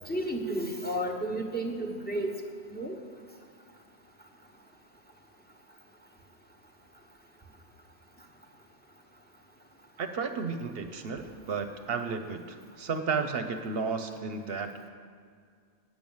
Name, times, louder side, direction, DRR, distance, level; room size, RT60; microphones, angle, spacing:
voice 1, 0.1-2.3 2.7-3.0, right 1 dB, 10° left, 1 dB, 1.0 m, -32 dB
voice 2, 10.0-14.7, right 5 dB, 65° right, 7 dB, 0.8 m, -33 dB
9.3 x 7.6 x 7.0 m, 2.1 s
omnidirectional pair, 1.1 m